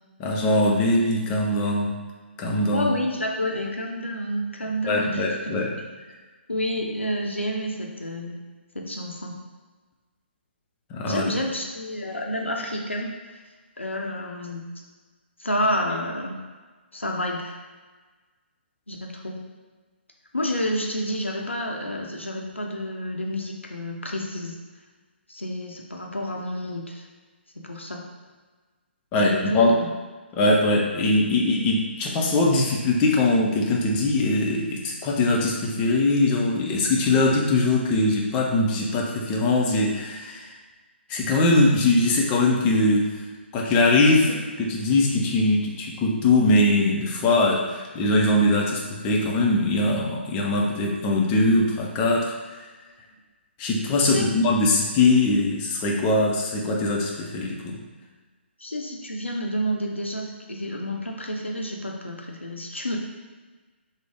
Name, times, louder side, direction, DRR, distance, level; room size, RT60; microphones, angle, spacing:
voice 1, 0.2-2.0 2.4-2.9 4.9-5.7 10.9-11.4 29.1-29.7 30.3-40.5 41.1-43.2 43.5-52.6 53.6-57.8, left 2 dB, 20° left, -1 dB, 0.4 m, -21 dB
voice 2, 2.7-5.5 6.5-8.4 8.7-9.4 11.1-13.1 13.8-14.6 15.4-16.4 16.9-17.5 18.9-19.4 20.3-24.5 25.3-27.0 27.6-28.0 29.2-29.9 44.3-44.4 54.0-54.3 58.6-63.0, equal, 85° left, 1 dB, 0.6 m, -29 dB
3.2 x 2.0 x 3.5 m, 1.4 s
figure-of-eight pair, 135°, 6 cm